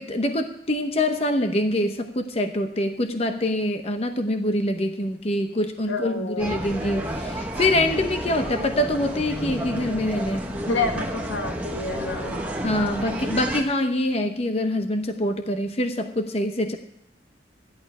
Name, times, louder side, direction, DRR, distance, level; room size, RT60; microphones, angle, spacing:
voice 1, 0.0-10.5 12.6-16.8, left 1 dB, 35° left, 6 dB, 0.8 m, -25 dB
voice 2, 5.9-6.5 10.6-12.4, left 3 dB, 90° left, 4 dB, 1.8 m, -28 dB
sound 1, 6.4-13.6, equal, 10° right, 1.3 m, -31 dB
14.0 x 11.0 x 4.8 m, 0.81 s
head